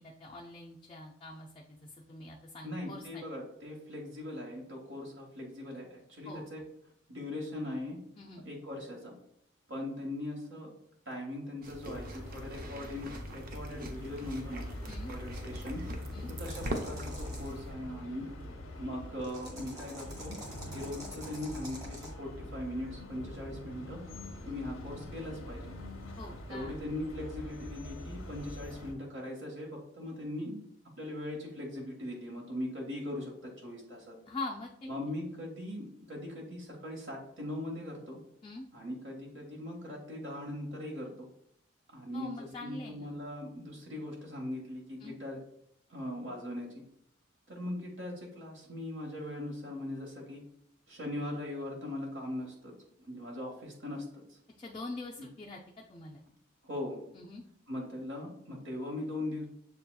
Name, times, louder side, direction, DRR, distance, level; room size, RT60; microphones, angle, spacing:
voice 1, 0.0-3.2 6.3-6.6 8.2-8.4 14.9-15.1 16.1-16.3 26.2-26.8 34.3-34.9 38.4-38.7 42.1-43.2 45.0-45.2 54.6-55.6 55.9-56.2 57.1-57.4, left 2 dB, 25° left, -2 dB, 0.3 m, -43 dB
voice 2, 2.6-6.6 7.1-8.0 8.4-9.2 9.7-10.7 11.1-14.7 15.1-18.3 18.8-20.4 20.7-24.0 24.4-25.8 26.5-30.6 31.0-34.1 34.9-38.2 38.7-41.3 41.9-45.4 45.9-46.8 47.5-50.4 50.9-52.7 53.0-54.4 55.2-55.3 56.6-57.0 57.7-59.5, left 1 dB, 70° right, -2 dB, 0.9 m, -40 dB
sound 1, 11.6-17.7, right 1 dB, 45° right, 0.5 m, -42 dB
sound 2, 11.9-28.9, left 1 dB, 90° left, 0.8 m, -44 dB
sound 3, 16.4-17.5 19.2-22.1, right 1 dB, 20° right, 0.8 m, -48 dB
6.9 x 2.7 x 2.2 m, 0.72 s
head